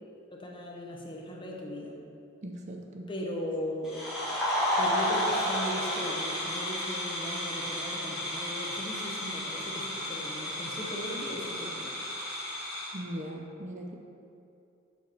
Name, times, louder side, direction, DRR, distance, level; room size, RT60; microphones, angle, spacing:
voice 1, 0.3-2.0 3.1-3.9 4.8-12.1, left 1 dB, 25° left, -1 dB, 0.8 m, -38 dB
voice 2, 2.4-3.1 12.9-14.0, equal, 35° right, 2 dB, 0.5 m, -39 dB
sound 1, 3.8-12.9, left 1 dB, ahead, 1.8 m, -32 dB
7.2 x 5.7 x 4.4 m, 2.6 s
head